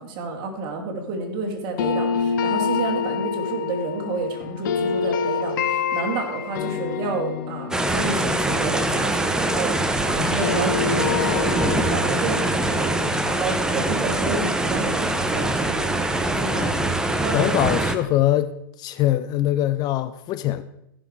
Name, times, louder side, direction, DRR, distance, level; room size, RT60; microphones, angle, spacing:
voice 1, 0.0-17.8, right 3 dB, 40° right, 2.6 m, -30 dB
sound 1, 1.8-9.9 10.2-15.1, left 6 dB, 65° left, 1.1 m, -28 dB
sound 2, 7.7-18.0, right 1 dB, 5° right, 0.8 m, -23 dB
voice 2, 17.3-20.6, left 13 dB, 35° left, 0.6 m, -23 dB
15.0 x 6.2 x 4.7 m
hypercardioid pair, 110°, 12 cm